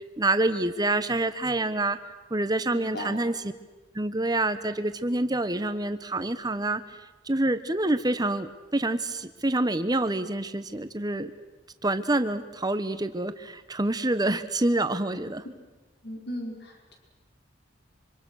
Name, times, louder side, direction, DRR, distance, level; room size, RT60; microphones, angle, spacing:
voice 1, 0.2-2.0 2.3-3.3 3.9-6.8 7.3-11.3 11.8-15.4, right 2 dB, 20° right, 11 dB, 1.1 m, -27 dB
voice 2, 2.7-3.2 16.0-16.9, left 1 dB, 60° left, 1 dB, 5.1 m, -37 dB
26.0 x 25.5 x 6.5 m, 1.2 s
head